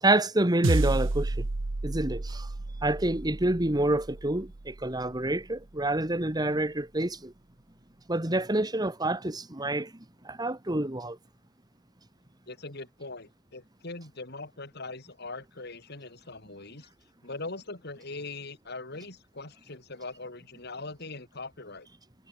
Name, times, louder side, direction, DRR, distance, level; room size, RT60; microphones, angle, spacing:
voice 1, 0.0-1.5 1.8-2.5 2.8-7.3 8.1-11.2, right 1 dB, 20° right, 2.0 m, -28 dB
sound 1, 0.6-5.2, right 2 dB, 80° right, 1.1 m, -31 dB
voice 2, 12.5-16.9 17.2-21.9, left 3 dB, 60° left, 4.3 m, -41 dB
head